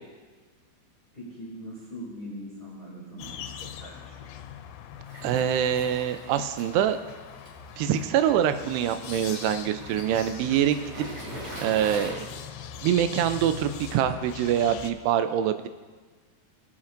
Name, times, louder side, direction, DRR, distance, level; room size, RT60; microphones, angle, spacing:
voice 1, 1.1-4.4, equal, 20° left, -7 dB, 1.8 m, -42 dB
sound 1, 3.2-14.9, left 9 dB, 80° left, 2.4 m, -42 dB
Waves surf, 5.0-12.1, right 1 dB, 40° right, 3.2 m, -43 dB
voice 2, 5.2-7.0 7.8-10.8 11.6-12.3 12.8-15.7, right 10 dB, 80° right, 9 dB, 2.5 m, -25 dB
19.5 x 7.2 x 2.6 m, 1.4 s
omnidirectional pair, 5.1 m